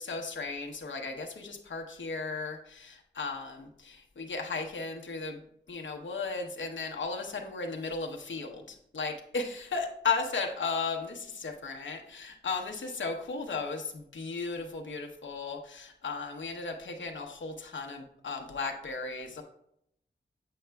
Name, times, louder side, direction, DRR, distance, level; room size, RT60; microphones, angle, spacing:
voice 1, 0.0-5.4 5.7-19.4, left 4 dB, 80° left, 2 dB, 0.9 m, -35 dB
7.7 x 5.6 x 2.2 m, 0.74 s
wide cardioid pair, 110°, 19 cm